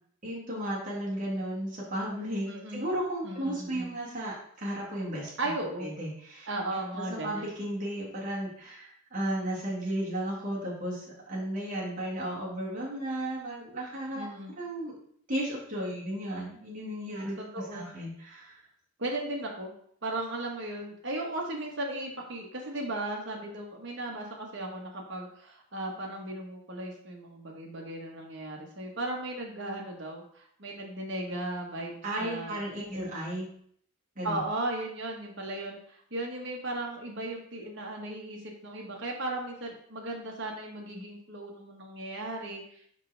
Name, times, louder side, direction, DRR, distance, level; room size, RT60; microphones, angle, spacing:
voice 1, 0.2-5.3 5.8-6.5 6.7-14.3 14.6-15.0 15.3-18.6 32.0-33.5 34.2-34.4, right 1 dB, 35° right, -6 dB, 1.8 m, -34 dB
voice 2, 2.4-2.8 3.2-3.9 5.4-5.9 6.5-7.5 14.1-14.5 17.4-17.9 19.0-19.7 20.0-33.1 34.2-42.9, right 2 dB, 55° right, -1 dB, 1.3 m, -36 dB
5.5 x 5.1 x 3.3 m, 0.64 s
head